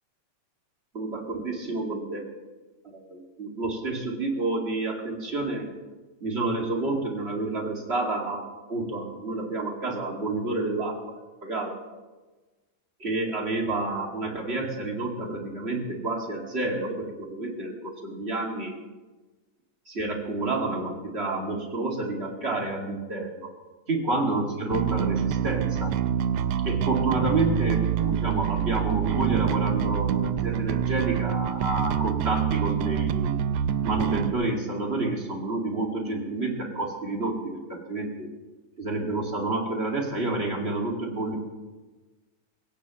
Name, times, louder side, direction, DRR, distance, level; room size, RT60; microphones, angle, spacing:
voice 1, 0.9-2.3 2.8-5.7 6.2-8.4 8.7-11.0 11.4-11.7 13.0-18.7 19.9-23.5 23.9-25.9 26.6-33.4 33.8-38.3 38.8-41.4, right 2 dB, 20° right, 0 dB, 2.2 m, -29 dB
Bass guitar, 24.7-34.3, right 9 dB, 85° right, 1.4 m, -26 dB
22.0 x 17.0 x 3.1 m, 1.2 s
omnidirectional pair, 3.4 m